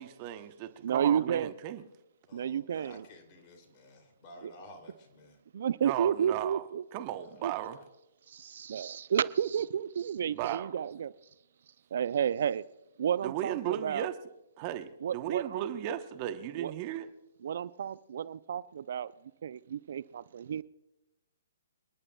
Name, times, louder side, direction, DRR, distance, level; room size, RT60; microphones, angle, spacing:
voice 1, 0.0-1.8 5.8-6.6 6.9-7.8 10.3-10.7 13.2-14.1 14.6-17.1, right 12 dB, 35° right, 1.0 m, -36 dB
voice 2, 0.8-1.5 2.3-3.1 4.4-4.5 5.5-6.8 7.4-7.5 8.3-11.1 11.9-12.6 13.0-14.1 15.0-15.7 16.6-16.7 17.4-19.1 19.4-20.6, right 8 dB, 60° right, 0.5 m, -31 dB
voice 3, 2.3-5.4 7.2-7.8, left 1 dB, 35° left, 3.0 m, -53 dB
27.5 x 11.0 x 2.3 m
figure-of-eight pair, 130°, 0 cm